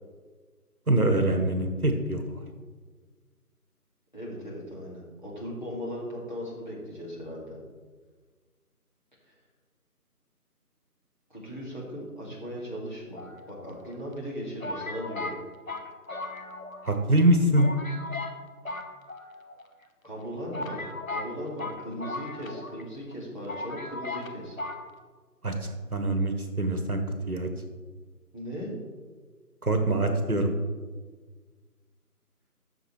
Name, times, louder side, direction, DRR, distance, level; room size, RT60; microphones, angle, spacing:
voice 1, 0.9-2.2 16.8-17.7 25.4-25.5 25.9-27.0 27.3-27.5 29.6-30.5, right 1 dB, 65° right, 5 dB, 1.3 m, -24 dB
voice 2, 4.1-7.6 11.3-15.4 20.0-24.6 28.3-28.7, equal, 30° left, -6 dB, 2.2 m, -38 dB
sound 1, 13.2-13.9 14.6-16.9 17.2-17.3 17.6-18.4 18.6-19.6 20.2-20.3 20.5-22.8 23.1-23.2 23.5-24.3 24.6-24.8, left 2 dB, 60° left, 0.9 m, -37 dB
13.0 x 6.7 x 3.2 m, 1.5 s
figure-of-eight pair, 175°, 47 cm